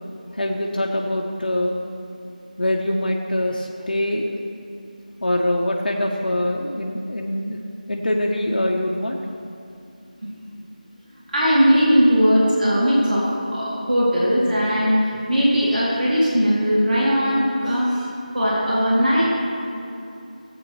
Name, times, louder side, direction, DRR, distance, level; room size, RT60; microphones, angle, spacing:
voice 1, 0.3-1.8 2.6-4.3 5.2-7.6 7.9-9.2, left 1 dB, 85° left, 0 dB, 0.9 m, -23 dB
voice 2, 11.3-18.1 18.3-19.3, equal, 80° right, -8 dB, 2.7 m, -19 dB
15.5 x 8.6 x 3.1 m, 2.7 s
figure-of-eight pair, 175°, 5 cm